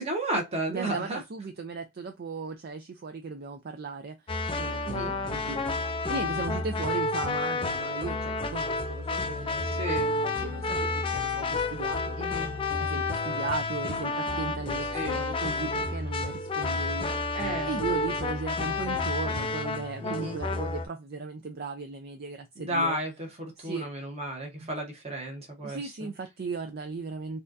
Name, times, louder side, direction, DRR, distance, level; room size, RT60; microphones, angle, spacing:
voice 1, 0.0-1.2 4.8-5.2 9.7-10.1 12.2-12.6 14.9-15.2 17.3-17.8 20.0-20.4 22.6-26.1, right 1 dB, 30° right, 1.0 m, -33 dB
voice 2, 0.7-12.5 12.8-17.3 17.6-23.0 23.6-23.9 24.6-24.7 25.6-27.4, right 4 dB, 45° right, 0.4 m, -37 dB
sound 1, 4.3-20.9, left 3 dB, 25° left, 0.4 m, -30 dB
4.1 x 2.4 x 2.6 m
head